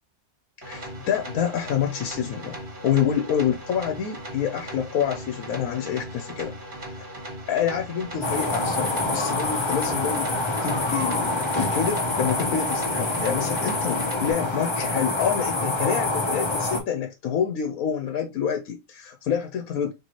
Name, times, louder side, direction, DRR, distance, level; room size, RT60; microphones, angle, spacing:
voice 1, 0.6-2.6 2.8-6.5 6.8-6.9 7.5-10.3 10.6-19.9, left 8 dB, 75° left, 1.2 m, -27 dB
sound 1, 0.6-14.3, right 1 dB, 35° right, 1.6 m, -38 dB
sound 2, 8.2-16.8, left 2 dB, 25° left, 0.7 m, -26 dB
4.5 x 3.0 x 2.9 m
omnidirectional pair, 1.5 m